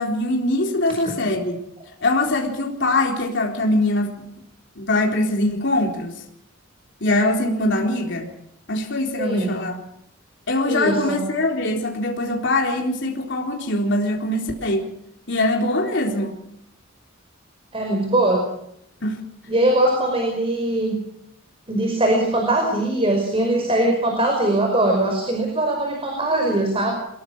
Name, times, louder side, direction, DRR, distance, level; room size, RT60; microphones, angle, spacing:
voice 1, 0.0-1.6 2.0-4.3 4.8-6.2 7.0-8.3 8.7-9.8 10.5-14.9 15.3-16.4 19.0-19.2, left 1 dB, 60° left, 1 dB, 3.9 m, -22 dB
voice 2, 9.2-9.5 10.7-11.2 17.7-18.4 19.5-21.0 21.7-27.0, right 1 dB, 30° right, 2 dB, 5.4 m, -21 dB
24.0 x 21.5 x 6.2 m, 0.77 s
head